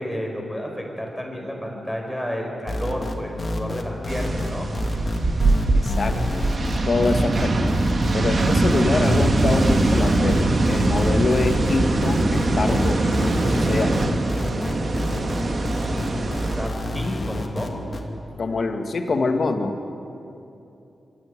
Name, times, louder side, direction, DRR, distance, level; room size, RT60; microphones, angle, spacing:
voice 1, 0.0-4.7 15.8-17.8, equal, ahead, 0 dB, 5.0 m, -31 dB
sound 1, 2.7-18.0, left 1 dB, 40° left, 2.7 m, -29 dB
sound 2, 4.1-16.7, right 2 dB, 50° right, 2.1 m, -22 dB
voice 2, 5.7-6.5 6.9-7.8 8.1-13.1 13.3-14.1 18.4-19.9, left 3 dB, 55° left, 5 dB, 1.9 m, -25 dB
25.0 x 13.5 x 9.9 m, 2.8 s
cardioid pair, 75°, 0 cm